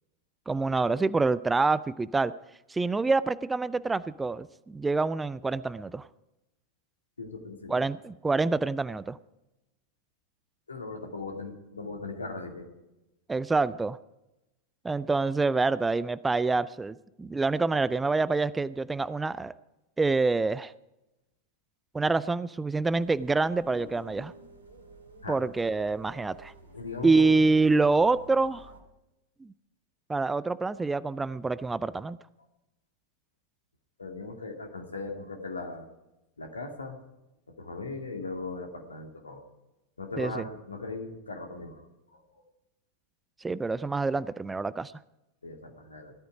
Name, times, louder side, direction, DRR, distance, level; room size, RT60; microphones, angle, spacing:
voice 1, 0.5-2.3 2.7-6.1 7.7-9.2 13.3-14.0 14.8-19.5 20.0-20.7 21.9-24.3 25.3-26.5 27.0-28.7 29.4-29.5 30.1-32.2 40.2-40.4 43.4-44.9, right 3 dB, 10° right, 18 dB, 0.4 m, -26 dB
voice 2, 7.2-7.8 10.7-12.7 25.2-25.4 26.7-27.4 34.0-35.9 36.4-37.0 37.5-39.4 40.0-41.9 42.1-42.2 45.4-46.1, left 3 dB, 75° left, 3 dB, 2.5 m, -38 dB
sound 1, 22.9-28.8, right 1 dB, 70° right, 2.7 m, -51 dB
18.0 x 12.5 x 4.9 m, 0.94 s
figure-of-eight pair, 90°, 0 cm